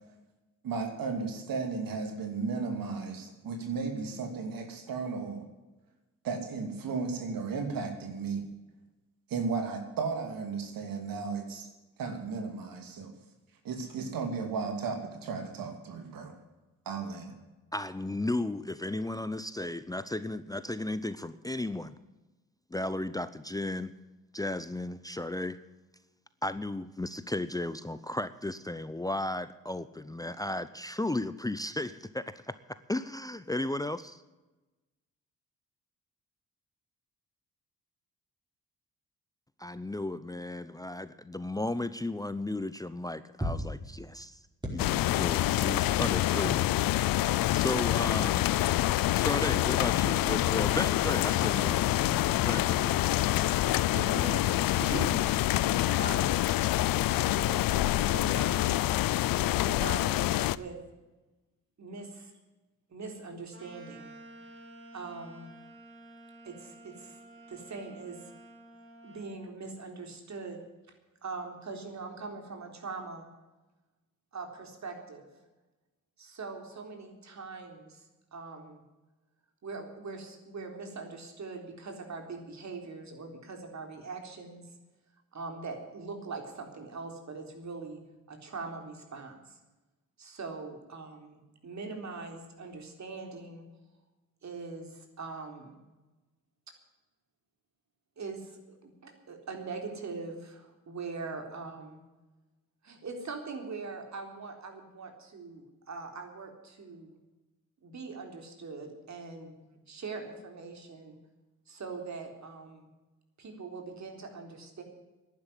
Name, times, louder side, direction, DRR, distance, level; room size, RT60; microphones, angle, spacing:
voice 1, 0.6-5.4 6.2-8.5 9.3-11.7 12.0-13.1 13.6-16.3 16.9-17.3, right 4 dB, 75° right, 5 dB, 2.8 m, -34 dB
voice 2, 17.7-22.0 22.7-24.0 24.3-25.6 26.4-34.2 39.6-44.4 44.7-47.0 47.5-48.5 49.2-52.9, left 2 dB, 10° left, 14 dB, 0.7 m, -35 dB
sound 1, 43.4-43.7 44.6-45.2 46.4-47.1 47.5-47.6, equal, 15° right, 5.1 m, -36 dB
sound 2, 44.8-60.6, left 15 dB, 75° left, 0.6 m, -26 dB
voice 3, 53.9-54.5 54.8-55.7 56.0-56.5 57.3-58.9 59.4-60.8 61.8-62.3 62.9-64.1 64.9-65.5 66.4-67.2 67.5-68.2 69.0-70.6 71.2-73.3 74.3-75.3 76.2-78.1 78.3-78.8 79.6-84.6 85.3-88.0 88.3-89.6 90.2-93.6 94.4-95.8 98.2-102.0 102.8-107.1 107.8-111.2 111.7-112.9 113.4-114.8, right 4 dB, 55° right, 4 dB, 3.9 m, -42 dB
sound 3, 63.5-69.4, right 2 dB, 35° right, 5.7 m, -51 dB
11.0 x 10.5 x 9.9 m, 1.1 s
cardioid pair, 70°, 34 cm